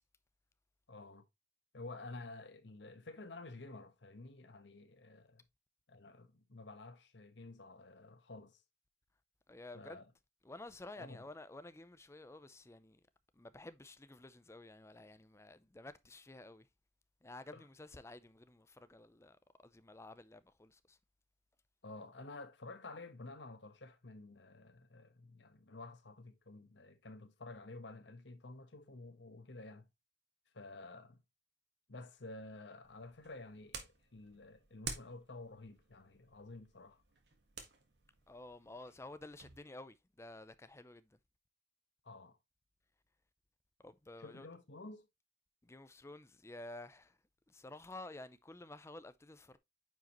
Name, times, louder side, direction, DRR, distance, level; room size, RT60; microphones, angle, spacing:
voice 1, 0.9-1.2 1.7-5.4 5.9-8.6 9.7-10.1 11.0-11.2 17.5-17.6 21.8-29.9 30.5-31.2 31.9-37.0 42.0-42.4 44.2-45.1, left 2 dB, 85° left, 1.2 m, -51 dB
voice 2, 9.5-10.0 10.4-13.0 13.3-16.7 17.2-21.0 38.3-41.2 43.8-44.5 45.6-47.2 47.5-49.6, left 2 dB, 15° left, 0.5 m, -52 dB
sound 1, 32.8-39.6, right 5 dB, 70° right, 1.7 m, -51 dB
9.3 x 4.9 x 3.0 m
head